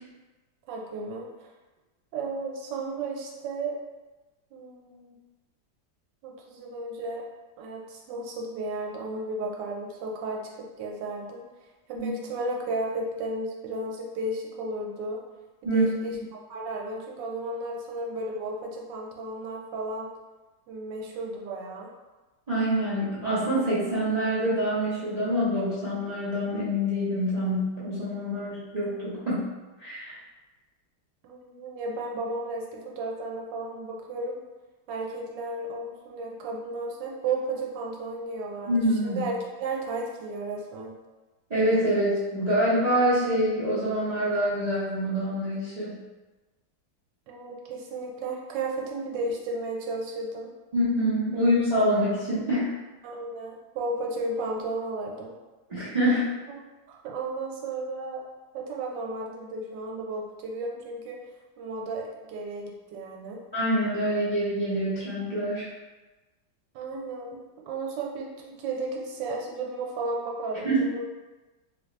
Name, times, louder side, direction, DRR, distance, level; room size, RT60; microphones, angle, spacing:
voice 1, 0.7-1.5 2.1-3.7 4.5-5.2 6.2-7.2 7.6-10.4 10.8-11.4 11.9-15.2 15.6-16.2 16.5-20.1 20.7-21.9 31.2-34.4 34.9-39.3 39.6-40.9 47.3-50.5 51.3-51.4 53.0-55.3 56.9-58.2 58.5-61.2 61.6-63.4 66.7-71.0, right 2 dB, 75° right, -1 dB, 1.3 m, -34 dB
voice 2, 22.5-29.5 29.8-30.1 38.7-39.2 41.5-46.0 50.7-52.7 55.7-56.3 63.5-65.7 70.6-70.8, equal, 45° right, -11 dB, 0.5 m, -26 dB
3.0 x 2.7 x 3.1 m, 1.2 s
omnidirectional pair, 2.0 m